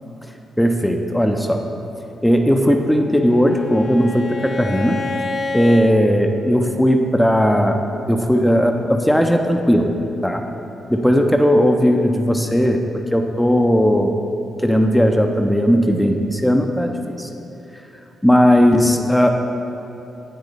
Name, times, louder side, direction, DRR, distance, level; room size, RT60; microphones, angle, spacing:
voice 1, 0.6-1.6 2.2-5.0 5.5-7.8 8.1-9.9 10.2-10.4 10.9-12.8 13.1-14.1 14.6-17.3 18.2-19.3, equal, 5° left, 4 dB, 1.1 m, -17 dB
Bowed string instrument, 2.8-6.0, left 3 dB, 45° left, 0.6 m, -29 dB
15.5 x 9.4 x 4.3 m, 2.9 s
supercardioid pair, 60°, 0 cm